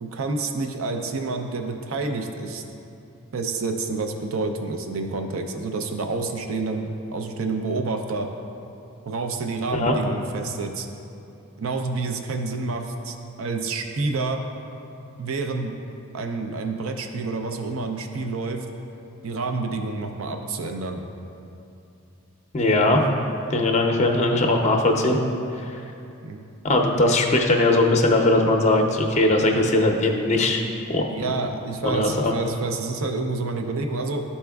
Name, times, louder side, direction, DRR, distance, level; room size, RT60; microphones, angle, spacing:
voice 1, 0.0-2.6 3.3-8.3 9.1-10.9 11.6-14.4 15.2-15.7 16.1-18.7 19.2-21.0 26.2-26.4 31.1-34.2, right 3 dB, 65° right, 5 dB, 0.5 m, -28 dB
voice 2, 22.5-23.0 23.5-25.2 25.6-25.8 26.6-30.6 30.9-31.3 31.8-32.3, left 2 dB, 30° left, 3 dB, 0.5 m, -20 dB
12.0 x 4.2 x 2.3 m, 2.7 s
head